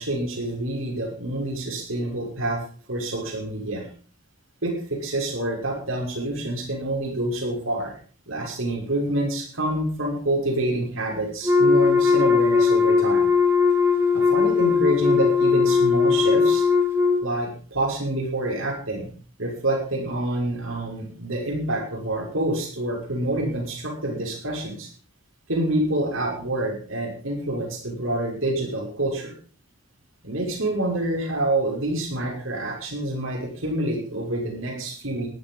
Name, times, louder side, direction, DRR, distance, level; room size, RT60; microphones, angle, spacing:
voice 1, 0.0-2.6 2.9-3.9 4.6-7.9 8.3-13.3 14.1-16.6 17.2-19.1 19.4-24.9 25.5-29.3 30.2-35.3, right 1 dB, 80° right, 0 dB, 6.0 m, -27 dB
Wind instrument woodwind instrument, 11.4-17.2, left 5 dB, 10° right, 2.8 m, -19 dB
14.5 x 12.0 x 5.5 m, 0.41 s
head